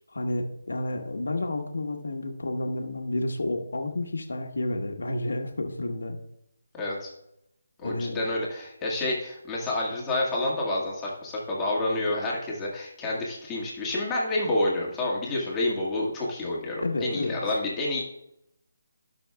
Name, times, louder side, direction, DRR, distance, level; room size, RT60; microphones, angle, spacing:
voice 1, 0.1-6.2 7.8-8.2 16.8-17.4, left 2 dB, 75° left, 3 dB, 1.3 m, -30 dB
voice 2, 6.7-7.1 7.8-18.0, left 2 dB, 15° left, -5 dB, 1.8 m, -29 dB
15.5 x 6.2 x 2.3 m, 0.81 s
figure-of-eight pair, 160°, 0 cm